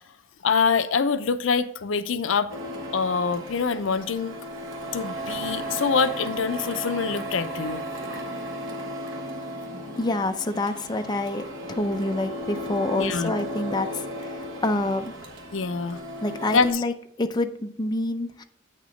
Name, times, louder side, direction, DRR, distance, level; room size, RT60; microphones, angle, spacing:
voice 1, 0.4-2.5 2.9-4.4 4.9-7.8 13.0-13.3 15.5-16.0 16.5-16.8, left 5 dB, 70° left, 0.5 m, -25 dB
Printer, 2.5-16.7, equal, 70° right, 1.3 m, -35 dB
voice 2, 10.0-15.1 16.2-18.4, left 2 dB, 20° left, 0.5 m, -27 dB
8.5 x 6.6 x 3.2 m
head